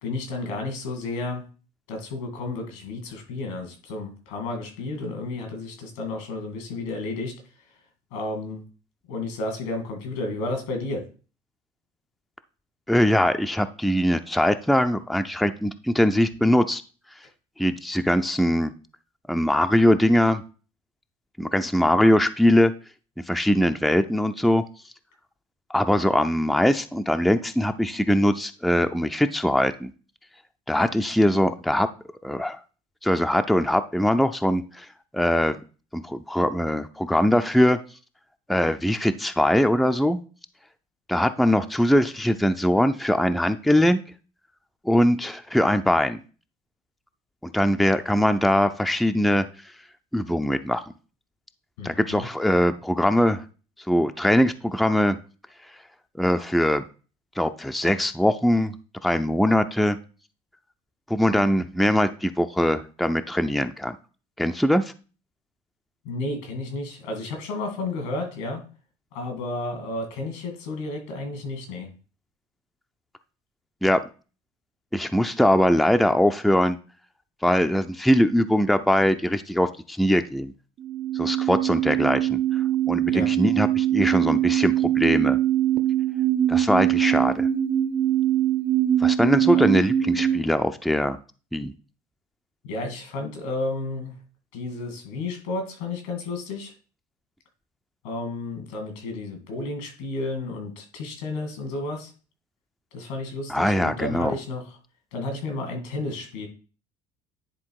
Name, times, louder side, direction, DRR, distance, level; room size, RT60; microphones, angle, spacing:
voice 1, 0.0-1.4 1.9-7.3 8.1-8.6 9.1-11.0 51.8-52.3 66.0-68.6 69.1-71.9 83.1-83.3 89.5-89.7 90.0-90.2 92.6-94.2 94.5-96.7 98.0-102.1 102.9-104.8 105.1-106.5, left 2 dB, 90° left, 4 dB, 2.4 m, -32 dB
voice 2, 12.9-16.8 17.6-18.7 19.3-20.4 21.4-22.7 23.3-24.6 25.7-29.9 30.7-31.9 32.2-32.6 33.0-34.9 35.1-35.5 35.9-37.8 38.5-40.2 41.1-44.0 44.8-46.2 47.4-49.4 50.1-50.9 51.8-53.4 53.9-55.2 56.2-56.8 57.4-58.7 59.0-60.0 61.1-64.0 64.4-64.9 73.8-74.0 74.9-76.8 77.4-80.5 81.1-82.4 82.9-85.4 86.5-87.5 89.0-91.2 91.5-91.7 103.5-104.3, equal, ahead, 9 dB, 0.5 m, -21 dB
sound 1, 80.8-90.4, right 12 dB, 35° right, 0.8 m, -22 dB
9.9 x 3.4 x 4.8 m, 0.36 s
supercardioid pair, 100°, 15 cm